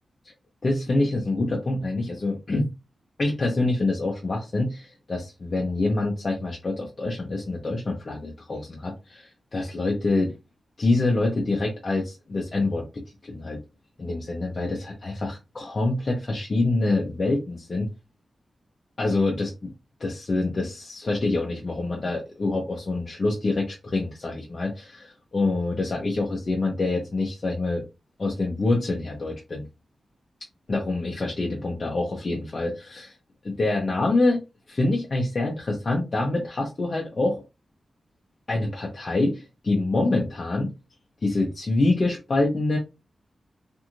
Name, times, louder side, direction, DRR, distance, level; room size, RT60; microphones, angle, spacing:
voice 1, 0.6-2.7 3.2-10.3 10.8-13.6 14.0-17.9 19.0-19.7 20.0-27.8 28.2-29.6 30.7-33.1 33.4-34.4 34.7-37.4 38.5-40.7 41.2-42.8, left 2 dB, 35° left, 0.6 m, -26 dB
2.6 x 2.4 x 2.9 m
wide cardioid pair, 170°, 0 cm